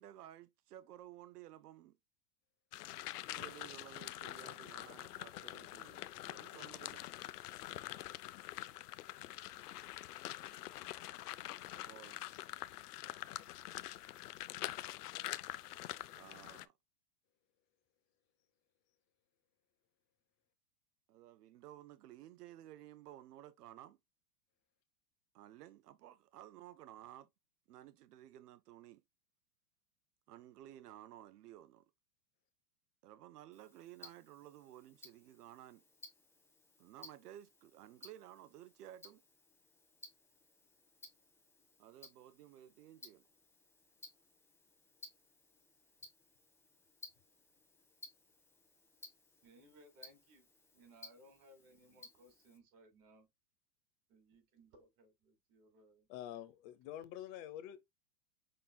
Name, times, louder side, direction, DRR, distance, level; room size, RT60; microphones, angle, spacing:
voice 1, 0.0-2.0 3.3-7.1 11.7-12.2 16.1-16.8 21.1-24.0 25.3-27.3 27.7-29.0 30.3-31.9 33.0-35.8 36.8-39.2 41.8-43.3, right 13 dB, 85° right, 0.6 m, -55 dB
sound 1, 2.7-16.7, left 15 dB, 80° left, 0.6 m, -46 dB
Tick-tock, 33.5-52.6, left 2 dB, 5° left, 1.2 m, -59 dB
voice 2, 49.4-50.5 50.7-53.3 54.1-56.1 56.8-57.1, right 1 dB, 55° right, 2.4 m, -63 dB
voice 3, 56.1-57.8, left 11 dB, 40° left, 0.8 m, -47 dB
5.7 x 3.6 x 2.2 m
hypercardioid pair, 120°, 46 cm